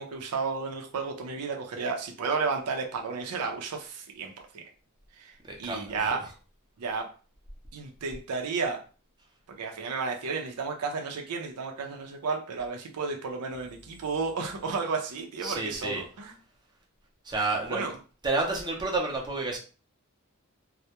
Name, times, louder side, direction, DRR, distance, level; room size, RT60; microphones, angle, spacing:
voice 1, 0.0-4.6 5.2-5.3 5.6-6.3 6.8-7.1 7.7-8.8 9.5-16.3 17.7-17.9, right 4 dB, 85° right, 3 dB, 0.5 m, -32 dB
voice 2, 5.4-6.1 15.4-16.0 17.2-18.0 18.2-19.6, right 3 dB, 20° right, -1 dB, 0.5 m, -30 dB
2.2 x 2.0 x 2.8 m, 0.36 s
head